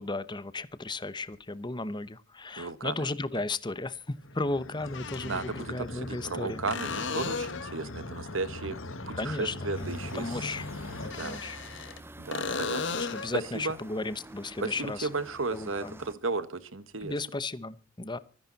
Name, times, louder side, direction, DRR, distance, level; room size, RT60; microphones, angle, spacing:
voice 1, 0.0-6.6 9.2-9.5 10.1-10.7 11.0-11.6 12.5-12.6 13.0-15.1 15.5-16.0 17.0-18.2, left 2 dB, 25° left, 16 dB, 0.9 m, -35 dB
sound 1, 1.3-1.4 3.5-3.6 4.8-5.6 6.7-7.8 11.0-12.0 12.3-13.4 17.0-17.1, left 4 dB, 65° left, 1.6 m, -35 dB
voice 2, 2.6-3.1 3.3-3.4 5.2-8.8 9.1-10.5 11.1-11.4 12.2-13.8 14.6-17.2, right 3 dB, 75° right, 14 dB, 1.5 m, -35 dB
sound 2, 4.2-11.1, left 2 dB, 80° left, 1.8 m, -40 dB
sound 3, 9.7-16.1, right 1 dB, 10° right, 0.7 m, -49 dB
24.5 x 10.5 x 4.1 m, 0.35 s
head